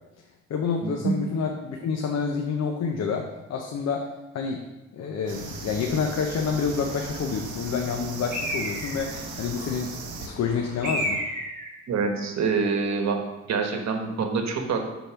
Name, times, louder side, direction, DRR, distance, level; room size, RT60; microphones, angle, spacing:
voice 1, 0.5-4.1 4.3-4.7 4.9-11.2, left 5 dB, 60° left, 3 dB, 0.8 m, -28 dB
sound 1, 5.2-11.2, left 2 dB, 85° left, 1.5 m, -42 dB
sound 2, 5.3-10.3, right 6 dB, 80° right, 1.0 m, -39 dB
Bird, 8.3-9.2 10.8-11.8, equal, 35° right, 2.4 m, -30 dB
voice 2, 11.9-13.2 13.5-14.8, right 5 dB, 60° right, 4 dB, 1.2 m, -26 dB
6.7 x 4.0 x 5.7 m, 1.0 s
cardioid pair, 90°, 30 cm